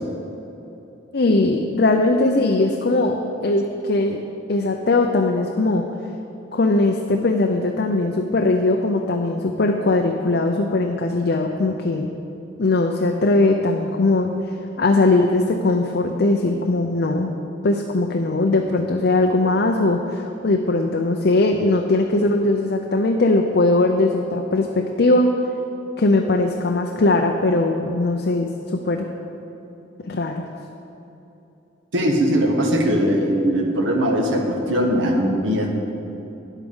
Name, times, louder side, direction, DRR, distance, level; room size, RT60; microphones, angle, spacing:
voice 1, 1.1-4.2 4.5-5.8 6.5-12.1 12.6-14.3 14.8-17.3 17.6-25.3 26.0-29.1 30.1-30.4, left 2 dB, 55° left, 3 dB, 0.6 m, -20 dB
voice 2, 31.9-35.7, equal, 90° right, 1 dB, 1.4 m, -20 dB
10.0 x 8.2 x 5.5 m, 3.0 s
head